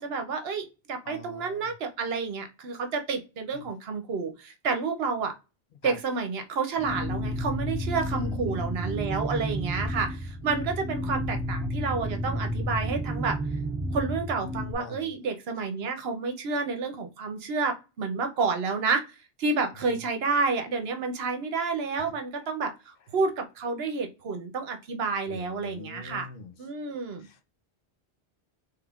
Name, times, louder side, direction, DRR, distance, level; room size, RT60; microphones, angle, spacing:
voice 1, 0.0-5.3 5.8-13.4 13.9-19.0 19.4-26.3 26.6-27.3, right 4 dB, 65° right, 0.9 m, -30 dB
voice 2, 1.0-1.7 5.8-6.0 8.1-8.6 14.8-15.1 19.9-20.0 25.3-26.5 27.2-27.4, left 4 dB, 60° left, 0.7 m, -43 dB
sound 1, 6.8-14.7, equal, 30° right, 1.2 m, -31 dB
3.5 x 3.2 x 2.3 m
omnidirectional pair, 1.1 m